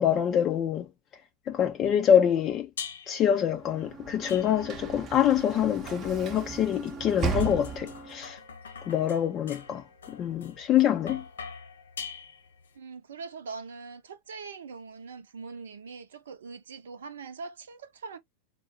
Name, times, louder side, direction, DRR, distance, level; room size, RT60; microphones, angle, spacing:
voice 1, 0.0-2.7 3.1-8.4 8.8-11.2, left 9 dB, 30° left, 0.5 m, -25 dB
sound 1, 2.8-3.3 4.3-4.9 5.9-12.7, left 6 dB, 65° left, 1.0 m, -44 dB
Sliding door / Slam, 3.5-8.3, right 5 dB, 30° right, 0.7 m, -36 dB
voice 2, 12.7-18.2, right 4 dB, 65° right, 0.6 m, -42 dB
4.2 x 2.2 x 2.9 m
figure-of-eight pair, 90°, 0 cm